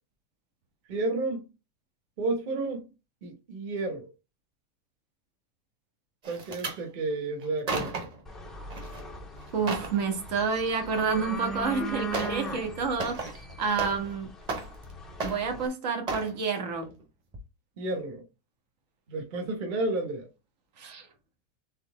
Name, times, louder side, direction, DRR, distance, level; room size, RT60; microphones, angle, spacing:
voice 1, 0.9-1.4 2.2-2.9 3.2-4.1 6.3-7.9 17.8-18.2 19.1-20.3, right 2 dB, 40° right, 1.2 m, -31 dB
sound 1, 6.2-6.8 7.4-8.2 8.7-9.0 9.4-10.0 11.3-11.4 12.1-12.5 12.8-14.1 14.4-14.9 15.2-15.7 16.1-16.3 16.8-17.0 17.3-17.4, right 3 dB, 25° right, 0.9 m, -34 dB
sound 2, 8.3-15.7, right 1 dB, ahead, 0.4 m, -39 dB
voice 2, 9.5-14.3 15.2-16.9 20.8-21.1, right 5 dB, 80° right, 1.5 m, -29 dB
4.3 x 3.5 x 3.5 m
supercardioid pair, 180°, 21 cm